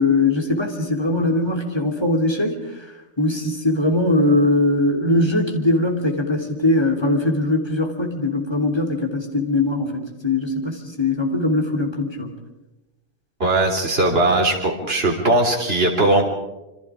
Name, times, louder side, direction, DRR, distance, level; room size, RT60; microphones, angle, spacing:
voice 1, 0.0-2.5 3.2-12.3, left 2 dB, 20° left, 1 dB, 3.2 m, -21 dB
voice 2, 13.4-16.2, right 2 dB, 50° right, 0 dB, 3.6 m, -19 dB
27.5 x 25.0 x 5.0 m, 1.0 s
omnidirectional pair, 1.4 m